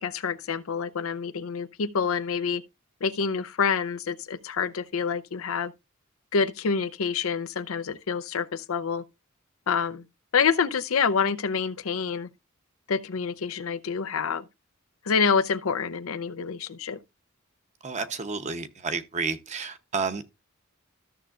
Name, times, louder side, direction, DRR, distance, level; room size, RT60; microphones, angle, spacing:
voice 1, 0.0-2.6 3.0-5.7 6.3-9.0 9.7-10.0 10.3-12.3 12.9-14.4 15.1-17.0, left 6 dB, 80° left, 0.6 m, -27 dB
voice 2, 17.8-20.2, right 4 dB, 35° right, 0.8 m, -31 dB
14.0 x 6.7 x 2.4 m
head